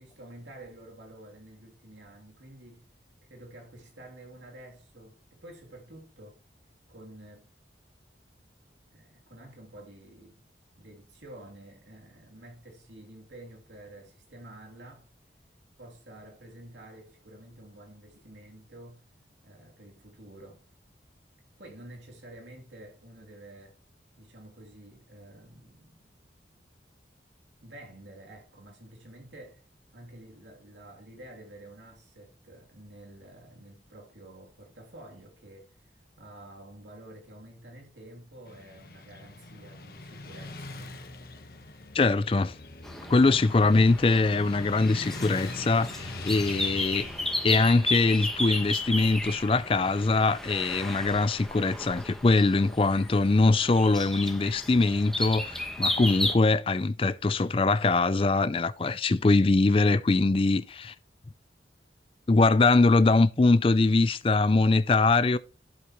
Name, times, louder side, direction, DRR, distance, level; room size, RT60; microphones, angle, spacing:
voice 1, 0.0-2.9 3.2-6.4 6.9-7.5 8.9-10.5 10.7-15.1 15.8-19.1 19.4-20.6 21.6-23.8 24.2-26.0 27.6-29.6 29.9-41.0, right 1 dB, 85° right, 3.0 m, -49 dB
Motorcycle / Traffic noise roadway noise, 38.5-52.6, left 2 dB, 55° left, 1.3 m, -44 dB
voice 2, 41.9-42.5 43.1-47.1 47.4-60.9 62.3-65.4, left 3 dB, 30° left, 0.4 m, -23 dB
sound 1, 42.8-56.4, left 1 dB, ahead, 1.2 m, -34 dB
11.5 x 8.2 x 3.1 m
head